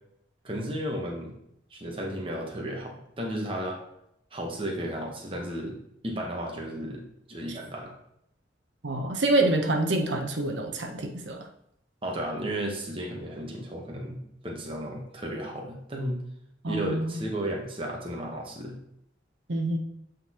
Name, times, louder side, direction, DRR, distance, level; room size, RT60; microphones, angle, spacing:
voice 1, 0.4-1.3 1.7-3.8 4.3-5.8 6.0-7.9 12.0-16.2 16.7-18.8, right 1 dB, 30° right, -1 dB, 1.0 m, -34 dB
voice 2, 8.8-11.4 16.6-17.1 19.5-19.8, right 2 dB, 75° right, 3 dB, 0.8 m, -26 dB
8.5 x 3.8 x 2.9 m, 0.76 s
head